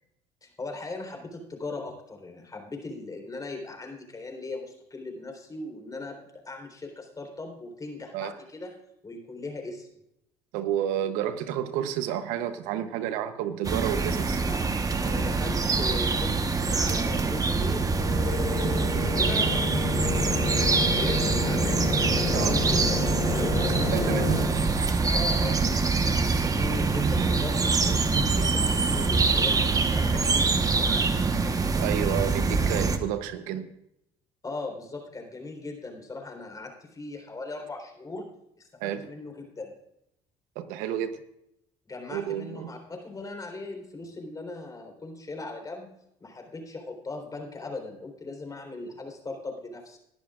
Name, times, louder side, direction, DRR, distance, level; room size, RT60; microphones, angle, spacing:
voice 1, 0.4-8.7 9.0-9.9 14.4-23.0 23.3-24.6 25.1-31.3 34.4-38.3 38.6-39.7 41.9-45.9 46.2-50.0, left 3 dB, 25° left, 3 dB, 3.8 m, -39 dB
voice 2, 10.5-14.4 22.3-22.6 23.8-24.4 31.8-33.7 38.8-39.1 40.6-41.2 42.1-42.7, right 10 dB, 80° right, 11 dB, 0.9 m, -30 dB
sound 1, 13.6-33.0, right 4 dB, 25° right, 1.2 m, -25 dB
sound 2, 17.8-24.5, left 4 dB, 80° left, 5.2 m, -31 dB
19.5 x 11.5 x 2.5 m, 0.80 s
supercardioid pair, 75°, 13 cm